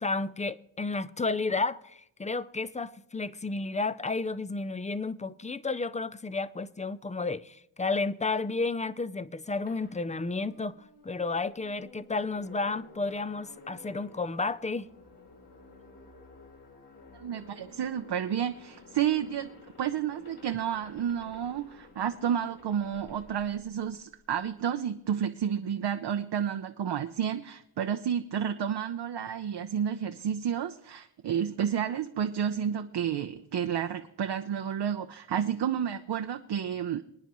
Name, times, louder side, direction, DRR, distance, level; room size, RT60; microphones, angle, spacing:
voice 1, 0.0-10.8 11.0-14.9, left 3 dB, 15° left, 0.5 m, -32 dB
sound 1, 9.7-24.4, left 2 dB, 60° left, 3.4 m, -53 dB
voice 2, 17.2-19.5 19.8-37.0, right 8 dB, 65° right, 0.7 m, -31 dB
28.5 x 9.9 x 3.1 m
wide cardioid pair, 90°, 45 cm